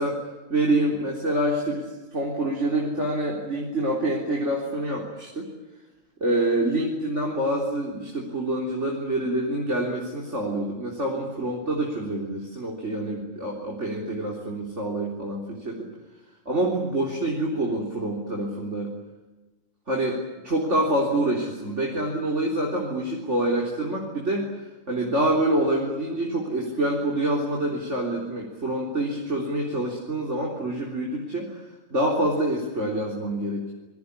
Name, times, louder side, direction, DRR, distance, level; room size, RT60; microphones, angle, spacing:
voice 1, 0.5-5.5 6.2-15.9 16.5-18.9 19.9-24.5 24.9-31.7 31.9-33.7, right 1 dB, 60° right, -2 dB, 4.1 m, -26 dB
27.0 x 22.0 x 8.4 m, 1.2 s
omnidirectional pair, 1.4 m